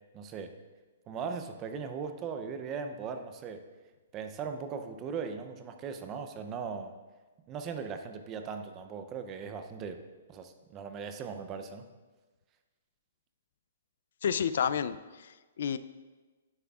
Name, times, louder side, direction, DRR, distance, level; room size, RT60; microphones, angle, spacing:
voice 1, 0.1-0.5 1.1-3.7 4.1-6.9 7.5-11.8, right 6 dB, 20° right, 8 dB, 0.5 m, -39 dB
voice 2, 14.2-15.8, left 7 dB, 65° left, 13 dB, 0.3 m, -30 dB
9.7 x 9.3 x 2.4 m, 1.3 s
hypercardioid pair, 160°, 0 cm